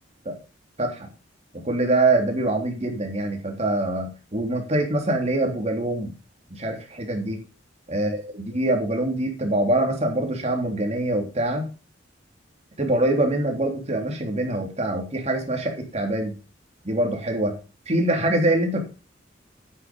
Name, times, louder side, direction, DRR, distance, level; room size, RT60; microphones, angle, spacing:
voice 1, 1.5-6.1 6.6-7.4 7.9-11.7 12.8-16.3 16.8-17.5 17.9-18.8, right 1 dB, 35° right, 3 dB, 3.5 m, -24 dB
9.5 x 8.7 x 5.3 m, 0.33 s
head